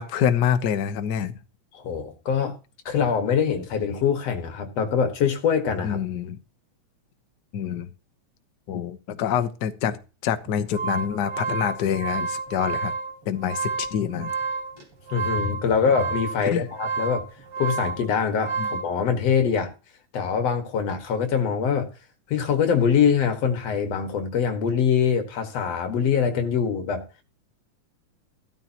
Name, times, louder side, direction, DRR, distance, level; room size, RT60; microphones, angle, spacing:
voice 1, 0.0-1.3 5.8-6.4 7.5-7.9 8.7-12.9 13.2-14.3 16.5-16.6 18.6-18.7, left 9 dB, 85° left, 0.9 m, -26 dB
voice 2, 1.7-2.6 2.9-6.0 15.1-17.3 17.6-19.7 20.1-21.9 22.3-27.0, left 7 dB, 60° left, 2.7 m, -23 dB
sound 1, 10.5-18.9, right 4 dB, 50° right, 4.2 m, -30 dB
15.0 x 13.0 x 3.0 m
omnidirectional pair, 3.4 m